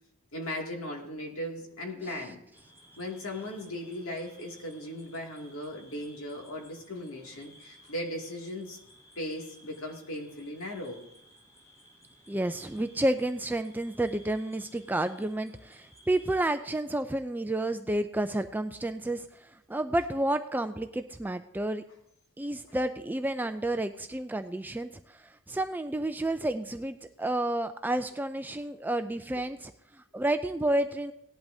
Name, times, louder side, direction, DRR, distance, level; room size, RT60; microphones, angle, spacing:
voice 1, 0.3-2.4 3.0-8.8 9.2-11.0 29.3-29.4, left 1 dB, 65° left, 0 dB, 2.4 m, -38 dB
sound 1, 2.5-16.4, equal, 15° left, 3.5 m, -58 dB
voice 2, 12.3-21.8 22.4-31.1, right 1 dB, 10° right, 8 dB, 0.3 m, -30 dB
18.0 x 11.0 x 2.7 m, 0.79 s
head